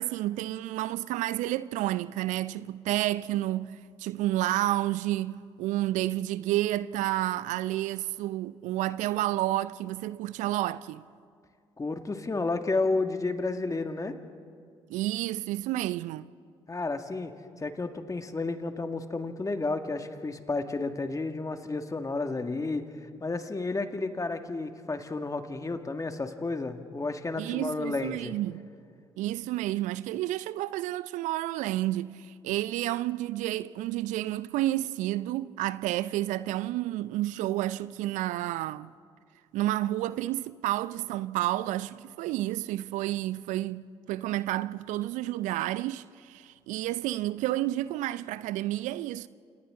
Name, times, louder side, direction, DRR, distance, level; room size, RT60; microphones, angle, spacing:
voice 1, 0.0-11.0 14.9-16.3 27.4-28.6 29.2-38.9 39.5-49.3, right 15 dB, 65° right, 0.5 m, -30 dB
voice 2, 11.8-14.2 16.7-28.4, left 3 dB, 25° left, 1.9 m, -32 dB
29.5 x 28.0 x 3.8 m
hypercardioid pair, 50°, 14 cm